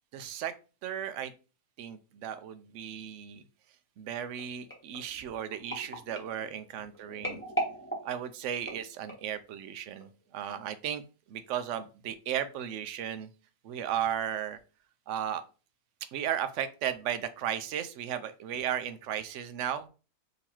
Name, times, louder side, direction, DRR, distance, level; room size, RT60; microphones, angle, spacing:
voice 1, 0.1-0.5 0.8-1.3 1.8-3.4 4.0-7.4 8.0-11.0 11.3-13.3 13.6-14.6 15.1-15.4 16.1-19.9, right 9 dB, 70° right, 11 dB, 0.7 m, -35 dB
sound 1, 4.4-9.4 10.0-10.2 10.5-10.6, right 1 dB, 10° left, 1.1 m, -39 dB
3.9 x 2.9 x 4.4 m, 0.34 s
omnidirectional pair, 1.6 m